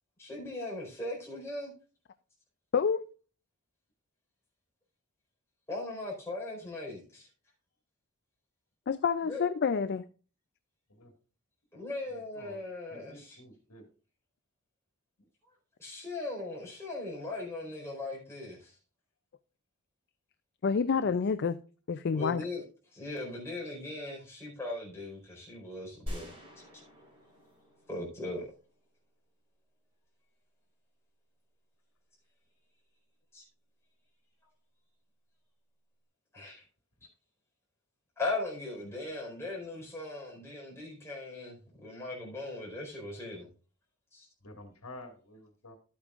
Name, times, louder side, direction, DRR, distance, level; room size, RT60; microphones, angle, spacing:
voice 1, 0.2-1.7 5.7-7.3 9.3-9.4 11.7-13.4 15.8-18.8 22.1-22.6 22.9-26.3 27.9-28.5 33.3-33.4 36.3-36.6 38.2-43.5 44.1-44.3, left 2 dB, 10° left, 4.4 m, -39 dB
voice 2, 2.7-3.1 8.9-10.1 20.6-21.6 21.9-22.4, left 6 dB, 50° left, 0.4 m, -28 dB
voice 3, 12.9-13.9 44.4-45.8, left 2 dB, 80° left, 2.1 m, -50 dB
sound 1, 26.1-29.0, equal, 25° right, 4.1 m, -45 dB
12.5 x 8.6 x 2.5 m
head